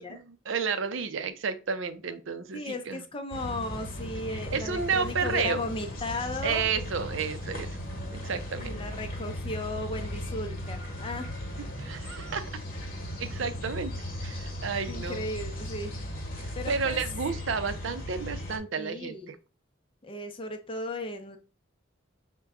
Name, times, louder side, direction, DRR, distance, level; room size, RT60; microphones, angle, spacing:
voice 1, 0.0-3.0 4.5-5.6 6.4-8.8 11.8-12.5 13.2-15.3 16.4-19.4, right 5 dB, 75° right, 11 dB, 0.5 m, -32 dB
voice 2, 2.5-6.6 8.6-11.3 14.9-16.0 16.6-17.0 18.8-19.3 20.0-21.4, left 2 dB, 25° left, 5 dB, 0.6 m, -36 dB
sound 1, 3.3-18.6, equal, 50° left, 1.1 m, -37 dB
Liquid, 4.2-9.2, right 1 dB, 20° right, 0.8 m, -56 dB
5.9 x 2.2 x 3.6 m, 0.34 s
head